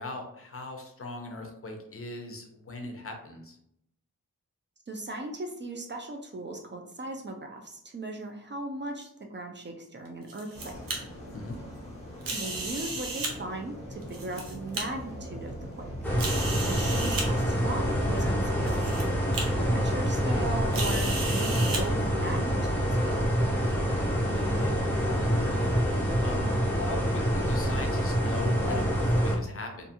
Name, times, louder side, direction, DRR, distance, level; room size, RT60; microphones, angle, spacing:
voice 1, 0.0-3.6 11.3-11.6 24.1-25.8 26.2-26.5 26.8-29.9, left 2 dB, 40° left, 3 dB, 0.6 m, -39 dB
voice 2, 4.9-10.8 12.3-15.9 16.6-19.1 19.6-23.3, right 2 dB, 35° right, 2 dB, 0.4 m, -38 dB
sound 1, 10.0-11.0 12.2-13.3 14.0-14.8 15.5-15.6 16.2-17.3 18.2-18.3 18.6-19.0 19.3-19.4 20.7-21.8, right 3 dB, 80° right, 0.7 m, -34 dB
sound 2, 10.5-27.7, left 1 dB, 20° left, 1.1 m, -40 dB
sound 3, 16.0-29.4, equal, 5° left, 0.7 m, -27 dB
2.5 x 2.3 x 2.7 m, 0.74 s
wide cardioid pair, 75°, 33 cm